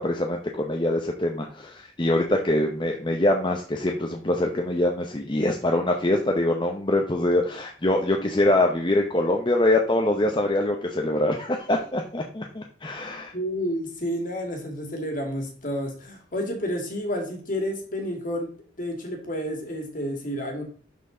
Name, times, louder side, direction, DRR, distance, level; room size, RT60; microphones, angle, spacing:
voice 1, 0.0-13.3, left 1 dB, 25° left, 2 dB, 0.8 m, -24 dB
voice 2, 13.3-18.5 18.8-20.6, equal, 45° left, 3 dB, 2.2 m, -30 dB
11.5 x 4.6 x 3.8 m, 0.43 s
head